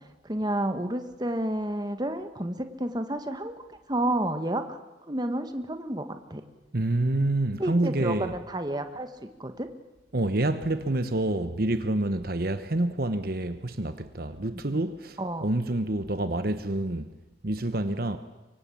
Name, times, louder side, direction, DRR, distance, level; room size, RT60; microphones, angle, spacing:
voice 1, 0.2-3.5 3.9-4.8 5.1-6.4 7.6-9.1 9.4-9.7 14.5-14.8 15.2-15.5, right 1 dB, 20° right, 1.6 m, -30 dB
voice 2, 6.7-8.3 10.1-17.1 17.4-18.2, right 1 dB, 55° right, 1.1 m, -27 dB
24.0 x 24.0 x 8.6 m
head